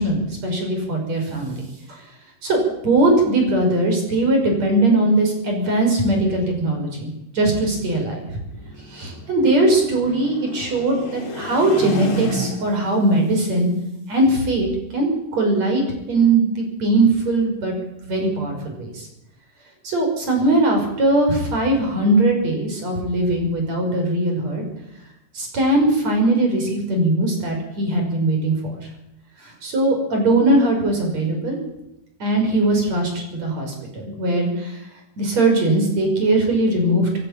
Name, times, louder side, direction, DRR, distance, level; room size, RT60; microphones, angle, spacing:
voice 1, 0.0-1.6 1.9-2.0 2.4-8.2 8.9-13.7 14.1-14.7 14.9-17.7 18.1-19.0 19.8-24.6 25.3-28.5 29.4-31.6 32.2-34.8 35.2-37.1, right 2 dB, 40° right, 2 dB, 6.8 m, -20 dB
sound 1, 7.4-12.9, left 1 dB, 35° left, 2.7 m, -32 dB
26.5 x 13.0 x 9.0 m, 0.88 s
omnidirectional pair, 4.5 m